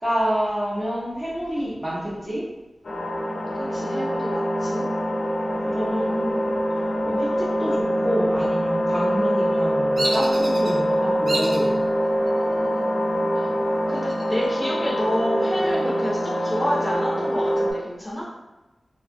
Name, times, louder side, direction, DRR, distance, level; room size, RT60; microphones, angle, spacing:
voice 1, 0.0-2.4 5.6-6.5 7.0-11.7, equal, 20° right, -7 dB, 0.9 m, -28 dB
sound 1, 2.8-17.7, equal, 70° left, 0.6 m, -24 dB
voice 2, 3.6-4.9 12.6-13.5 13.9-18.2, equal, 20° left, -6 dB, 0.7 m, -29 dB
Bird vocalization bird call bird song, 10.0-10.7 11.3-11.7 12.3-12.8 13.9-14.7 15.1-15.2 15.6-17.0, right 1 dB, 70° right, 0.6 m, -31 dB
2.9 x 2.4 x 2.5 m, 1.1 s
wide cardioid pair, 100°, 0 cm